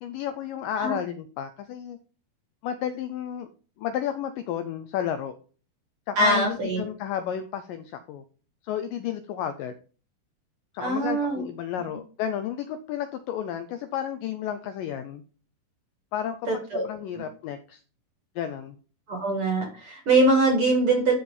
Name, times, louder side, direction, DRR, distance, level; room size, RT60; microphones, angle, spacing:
voice 1, 0.0-2.0 2.6-3.5 3.8-5.3 6.1-8.2 8.6-9.7 10.7-15.2 16.1-16.5 16.7-17.8 18.4-18.8, left 9 dB, 80° left, 9 dB, 2.0 m, -32 dB
voice 2, 6.2-6.8 10.8-11.4 16.5-16.9 19.1-21.1, right 2 dB, 40° right, 2 dB, 2.3 m, -22 dB
12.0 x 4.4 x 5.4 m, 0.40 s
omnidirectional pair, 4.5 m